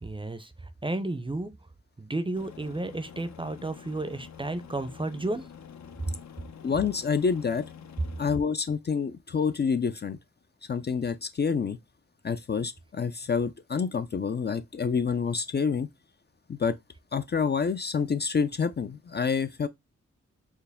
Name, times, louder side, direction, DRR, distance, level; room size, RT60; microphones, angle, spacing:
voice 1, 0.0-1.5 2.0-5.5, right 2 dB, 15° right, 0.6 m, -32 dB
Aircraft, 2.4-8.4, left 7 dB, 70° left, 0.7 m, -47 dB
voice 2, 6.6-7.6 8.2-10.2 10.7-11.8 12.2-15.9 16.5-16.8 17.1-19.7, left 5 dB, 35° left, 0.4 m, -27 dB
4.5 x 2.1 x 3.4 m
cardioid pair, 55°, 29 cm